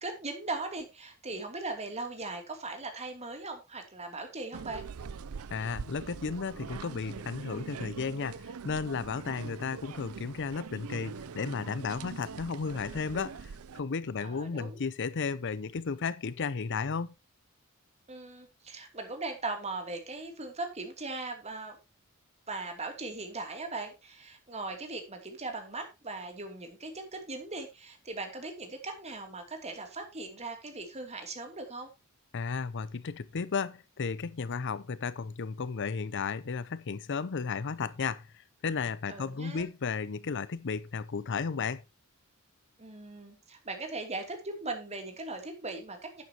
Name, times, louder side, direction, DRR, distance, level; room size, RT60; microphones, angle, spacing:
voice 1, 0.0-4.8 14.2-14.8 18.1-21.8 22.5-31.9 39.1-39.7 42.8-46.2, right 3 dB, 30° right, 2.8 m, -39 dB
sound 1, 4.5-13.8, right 6 dB, 75° right, 0.5 m, -43 dB
voice 2, 5.5-17.1 32.3-38.3 38.6-41.8, left 5 dB, 55° left, 0.6 m, -34 dB
11.5 x 9.3 x 2.9 m
head